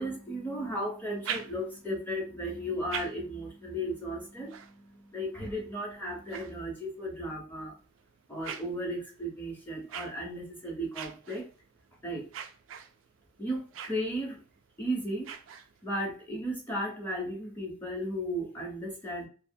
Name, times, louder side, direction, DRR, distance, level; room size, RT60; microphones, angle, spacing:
voice 1, 0.0-7.7 8.3-11.4 12.0-12.2 13.4-14.4 14.8-19.3, equal, 10° left, -1 dB, 0.8 m, -35 dB
sound 1, 1.0-2.0 2.6-7.2 7.8-16.1, right 8 dB, 85° right, 0.4 m, -45 dB
2.8 x 2.0 x 2.6 m, 0.39 s
head